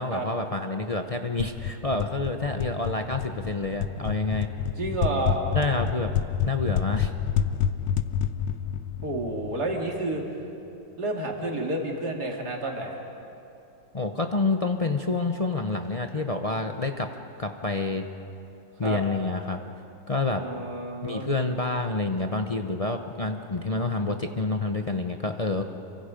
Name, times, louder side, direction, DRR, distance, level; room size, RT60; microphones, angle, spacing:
voice 1, 0.0-4.5 5.5-6.1 6.5-7.1 13.9-17.1 17.4-18.1 18.8-19.6 20.1-20.4 21.0-25.6, left 3 dB, 40° left, 4 dB, 0.5 m, -28 dB
sound 1, 1.4-10.1, left 8 dB, 85° left, 1.4 m, -29 dB
voice 2, 4.8-5.4 9.0-10.2 11.0-13.0 18.8-19.0 20.3-21.3, right 2 dB, 60° right, 0 dB, 3.1 m, -30 dB
28.0 x 24.0 x 5.2 m, 2.8 s
omnidirectional pair, 1.9 m